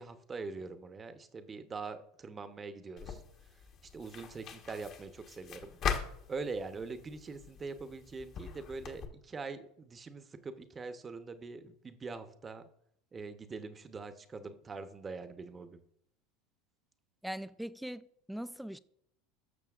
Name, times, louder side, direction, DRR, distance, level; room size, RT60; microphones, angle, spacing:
voice 1, 0.0-3.6 3.9-5.8 6.3-12.6 13.1-15.8, right 4 dB, 25° right, 0.9 m, -43 dB
sound 1, 3.0-9.1, left 7 dB, 45° left, 1.2 m, -41 dB
voice 2, 17.2-18.8, equal, ahead, 0.4 m, -41 dB
14.5 x 6.5 x 2.5 m
hypercardioid pair, 85°, 0 cm